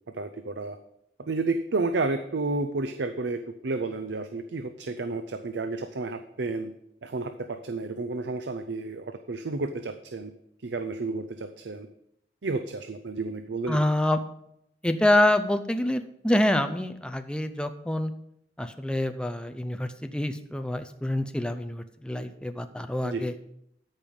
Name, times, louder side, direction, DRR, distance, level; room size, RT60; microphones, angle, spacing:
voice 1, 0.1-0.8 1.2-6.7 7.0-10.3 10.6-11.9 12.4-13.8 23.0-23.3, right 3 dB, 85° right, 9 dB, 0.6 m, -31 dB
voice 2, 13.7-14.2 14.8-18.1 18.6-23.3, left 1 dB, 5° left, 8 dB, 0.5 m, -26 dB
13.5 x 5.4 x 5.4 m, 0.75 s
head